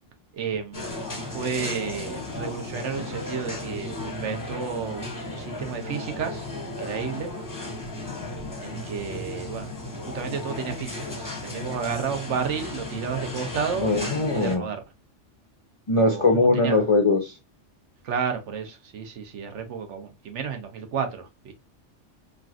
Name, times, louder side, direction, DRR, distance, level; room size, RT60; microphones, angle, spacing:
voice 1, 0.3-7.3 8.6-14.8 16.0-16.8 18.0-21.5, right 6 dB, 75° right, 1.0 m, -32 dB
sound 1, 0.7-14.6, left 2 dB, 20° left, 0.7 m, -35 dB
voice 2, 13.8-14.6 15.9-17.3, left 2 dB, 45° left, 0.4 m, -21 dB
3.1 x 2.5 x 2.4 m
omnidirectional pair, 1.3 m